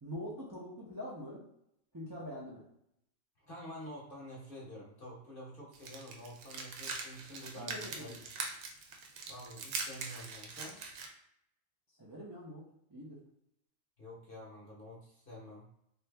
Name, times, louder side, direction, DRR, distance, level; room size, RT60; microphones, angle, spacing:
voice 1, 0.0-1.4 1.9-2.6 7.5-8.2 12.0-12.6 12.9-13.2, equal, 25° right, -5 dB, 0.4 m, -44 dB
voice 2, 3.4-8.1 9.3-10.8 14.0-15.6, equal, 50° left, -4 dB, 0.9 m, -48 dB
sound 1, 5.7-11.1, right 4 dB, 80° right, 1.0 m, -42 dB
2.7 x 2.5 x 3.3 m, 0.75 s
omnidirectional pair, 1.4 m